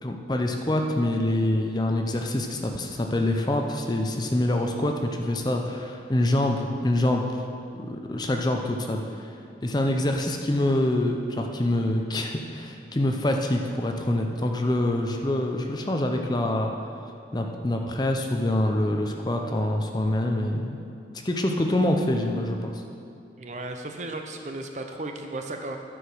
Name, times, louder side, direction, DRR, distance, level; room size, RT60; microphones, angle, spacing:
voice 1, 0.0-7.4 7.7-9.3 9.6-16.7 17.3-20.8 21.2-22.8, left 1 dB, 25° left, 3 dB, 0.5 m, -25 dB
voice 2, 23.4-25.8, right 2 dB, 40° right, 4 dB, 0.6 m, -35 dB
9.6 x 4.9 x 6.2 m, 2.4 s
head